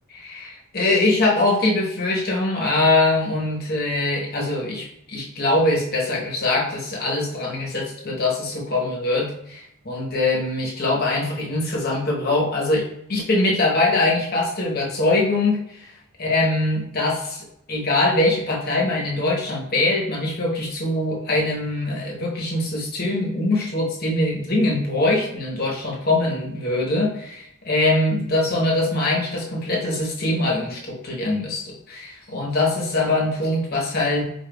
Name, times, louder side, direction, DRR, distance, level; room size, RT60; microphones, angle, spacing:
voice 1, 0.1-15.9 16.2-34.2, left 2 dB, 45° left, -2 dB, 0.9 m, -23 dB
4.5 x 3.4 x 2.2 m, 0.74 s
head